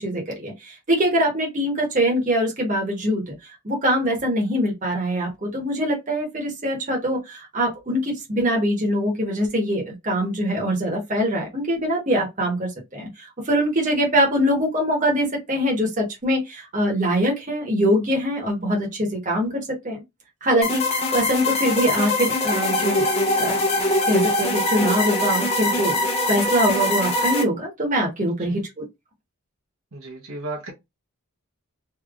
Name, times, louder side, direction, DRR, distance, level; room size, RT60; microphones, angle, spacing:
voice 1, 0.0-3.3 3.6-20.0 20.4-23.1 23.4-23.6 24.1-28.8, equal, 35° right, 1.3 m, -23 dB
sound 1, 20.6-27.4, left 1 dB, 30° left, 0.8 m, -22 dB
voice 2, 29.9-30.7, right 2 dB, 70° right, 1.1 m, -34 dB
3.2 x 3.0 x 2.5 m
head